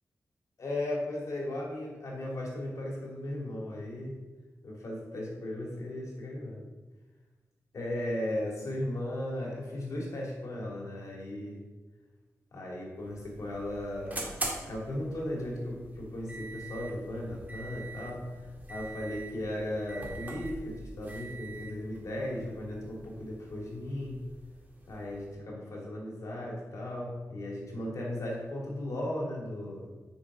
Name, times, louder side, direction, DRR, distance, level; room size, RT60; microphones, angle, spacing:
voice 1, 0.6-4.2 4.6-6.6 7.7-11.6 12.5-14.3 14.6-18.3 18.7-24.2 24.9-29.9, left 1 dB, 65° left, -3 dB, 2.5 m, -36 dB
sound 1, 12.9-25.3, right 2 dB, 30° right, 2.1 m, -44 dB
6.4 x 6.2 x 4.9 m, 1.3 s
wide cardioid pair, 90°, 6 cm